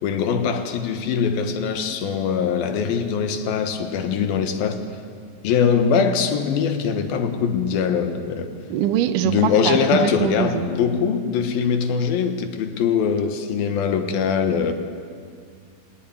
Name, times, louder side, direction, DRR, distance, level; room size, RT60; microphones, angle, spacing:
voice 1, 0.0-4.9 5.4-8.5 9.2-14.7, left 6 dB, 90° left, 3.2 m, -22 dB
voice 2, 8.7-10.7, right 11 dB, 70° right, 2.4 m, -23 dB
22.5 x 19.0 x 9.4 m
omnidirectional pair, 4.1 m